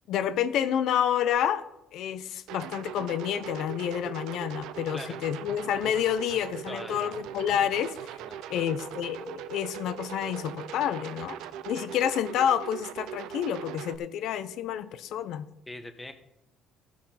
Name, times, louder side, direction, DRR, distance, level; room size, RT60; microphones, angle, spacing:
voice 1, 0.1-1.6 1.9-8.0 8.5-11.4 11.7-15.5, left 9 dB, 65° left, 12 dB, 0.7 m, -29 dB
sound 1, 2.5-14.0, right 10 dB, 85° right, 0.5 m, -40 dB
voice 2, 6.7-7.2 8.2-8.8 11.6-11.8 15.7-16.1, left 1 dB, 10° left, 7 dB, 1.0 m, -43 dB
16.0 x 5.9 x 4.3 m, 0.88 s
cardioid pair, 150°, 0 cm